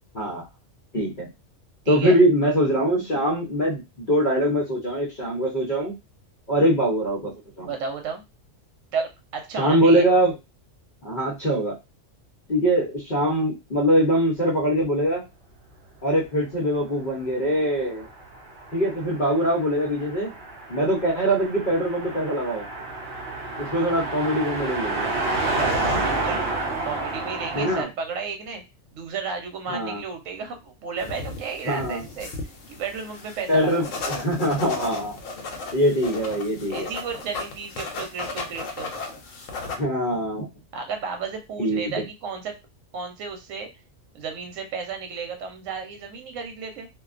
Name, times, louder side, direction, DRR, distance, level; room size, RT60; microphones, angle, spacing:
voice 1, 0.9-1.3 1.9-5.9 6.5-7.3 7.6-7.7 9.6-10.3 11.0-11.8 12.5-15.2 16.0-18.1 18.7-20.3 20.7-22.7 23.6-25.1 27.5-27.9 29.7-30.0 31.6-32.0 33.5-35.2 35.7-36.9 39.7-40.5 41.6-42.0, equal, 45° left, -6 dB, 0.8 m, -22 dB
voice 2, 1.9-2.2 7.6-8.2 8.9-10.0 26.0-26.5 26.8-28.6 28.9-32.3 32.8-33.8 36.7-38.9 40.7-42.5 42.9-43.7 44.1-46.9, right 5 dB, 85° right, 5 dB, 1.0 m, -33 dB
Car passing by, 17.7-27.8, right 2 dB, 60° right, 0.8 m, -29 dB
sound 1, 31.0-39.8, left 3 dB, 80° left, 1.0 m, -35 dB
2.4 x 2.2 x 2.4 m, 0.24 s
omnidirectional pair, 1.3 m